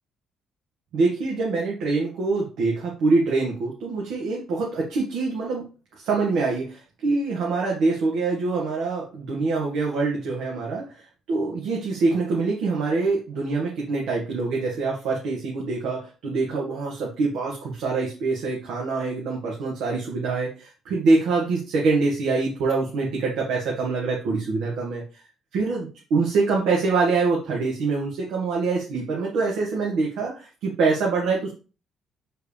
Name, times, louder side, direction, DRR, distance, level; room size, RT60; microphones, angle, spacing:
voice 1, 0.9-5.7 5.9-25.2 25.5-31.5, right 3 dB, 85° right, -3 dB, 2.1 m, -25 dB
7.8 x 4.6 x 3.5 m, 0.34 s
cardioid pair, 130°, 0 cm